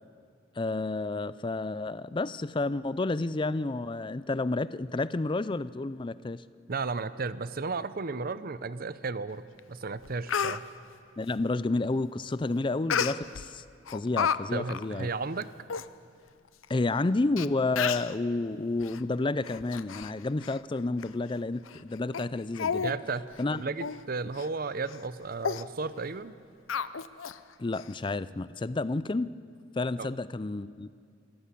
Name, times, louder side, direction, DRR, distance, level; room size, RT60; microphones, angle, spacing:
voice 1, 0.6-6.4 11.2-13.6 13.9-15.1 16.7-22.9 23.4-23.6 27.6-29.3 29.8-30.9, left 2 dB, 25° left, 16 dB, 0.4 m, -30 dB
voice 2, 6.7-10.6 14.5-15.5 22.8-26.3 30.0-30.1, right 4 dB, 45° right, 14 dB, 0.7 m, -34 dB
Speech, 9.6-9.7 10.0-10.6 12.9-13.5 13.9-14.4 14.7-14.9 15.4-15.5 15.7-15.9 16.6-16.7 17.4-17.5 17.8-18.1 18.8-19.0 19.4-20.1 20.4-20.6 21.0-21.1 21.7-21.8 22.1-22.3 22.6-23.0 23.3-23.4 23.8-24.0 24.4-24.5 24.9-25.1 25.4-25.6 26.7-27.4 27.7-27.8, left 7 dB, 90° left, 0.6 m, -31 dB
27.0 x 14.5 x 8.4 m, 2.3 s
head